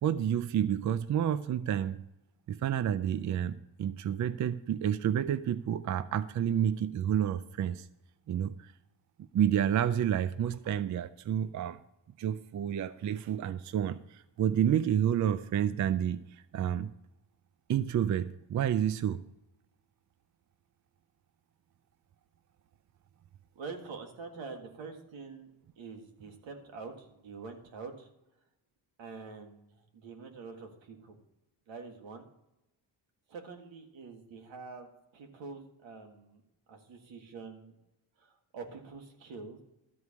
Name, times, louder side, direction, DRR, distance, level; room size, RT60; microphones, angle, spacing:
voice 1, 0.0-2.1 2.5-7.9 8.3-8.7 9.3-11.8 12.2-16.9 17.7-19.2, right 9 dB, 45° right, 14 dB, 0.4 m, -30 dB
voice 2, 23.5-25.5 25.8-28.1 29.0-31.2 31.7-32.3 33.3-36.4 36.7-37.8 38.2-39.6, right 4 dB, 80° right, 4 dB, 1.9 m, -46 dB
13.0 x 4.7 x 8.4 m, 0.93 s
cardioid pair, 125°, 45 cm